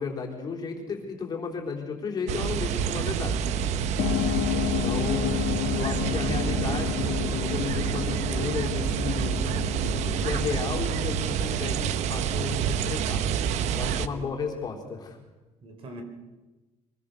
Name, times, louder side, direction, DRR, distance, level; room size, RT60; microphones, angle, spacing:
voice 1, 0.0-3.5 4.0-4.2 4.8-5.4 5.8-9.4 10.0-13.2 13.7-15.2, left 5 dB, 35° left, 1 dB, 3.8 m, -34 dB
sound 1, 2.3-14.1, right 8 dB, 65° right, 0.9 m, -28 dB
sound 2, 4.0-12.1, left 13 dB, 85° left, 1.0 m, -31 dB
voice 2, 4.0-4.8 14.1-14.3 15.6-16.0, right 1 dB, 50° right, 6 dB, 3.9 m, -44 dB
23.5 x 20.0 x 6.8 m, 1.2 s
cardioid pair, 155°, 12 cm